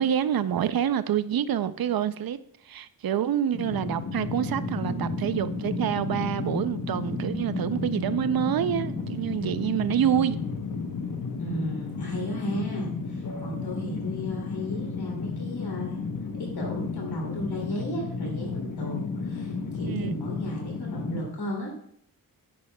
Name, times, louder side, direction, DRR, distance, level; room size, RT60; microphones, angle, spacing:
voice 1, 0.0-2.4 2.7-10.4 19.9-20.2, right 9 dB, 70° right, 0.5 m, -27 dB
sound 1, 3.5-21.2, left 4 dB, 55° left, 1.0 m, -33 dB
sound 2, 4.4-9.4, right 4 dB, 45° right, 1.1 m, -38 dB
voice 2, 11.4-16.0 16.4-21.7, equal, 85° left, 2.7 m, -34 dB
10.0 x 8.6 x 2.2 m
wide cardioid pair, 115°, 37 cm